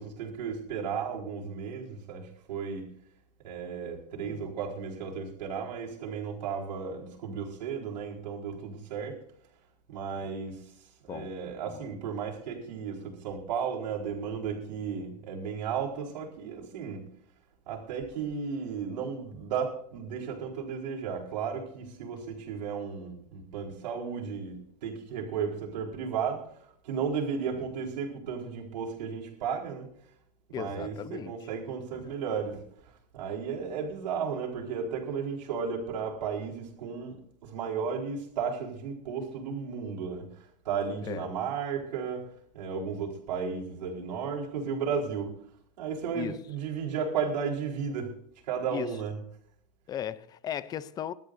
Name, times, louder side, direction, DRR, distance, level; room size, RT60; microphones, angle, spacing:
voice 1, 0.0-2.9 3.4-9.2 9.9-17.0 17.7-26.4 26.8-29.9 30.6-32.6 33.1-40.3 40.6-42.3 42.5-45.3 45.8-48.1 48.5-49.1, right 6 dB, 80° right, 4.3 m, -34 dB
voice 2, 4.1-4.5 10.2-10.3 11.1-11.3 11.6-11.9 30.5-31.3 32.0-32.1 41.0-41.3 46.1-46.4 48.7-49.0 49.9-51.1, left 9 dB, 20° left, 0.5 m, -37 dB
22.0 x 12.5 x 2.6 m
supercardioid pair, 150°, 21 cm